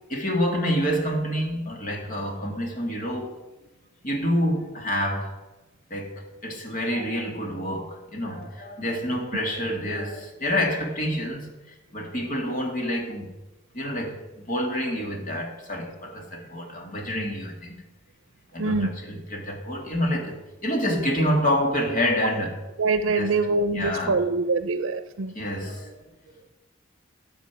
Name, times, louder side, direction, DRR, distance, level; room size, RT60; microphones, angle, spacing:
voice 1, 0.1-3.3 4.0-5.4 5.9-11.5 11.9-13.3 13.7-17.8 18.5-22.6 23.1-23.4 23.7-24.2 25.3-26.0, equal, 45° left, 2.5 m, -27 dB
voice 2, 18.6-18.9 22.2-22.3 22.8-25.3, right 3 dB, 90° right, 0.6 m, -24 dB
14.0 x 7.4 x 6.2 m
head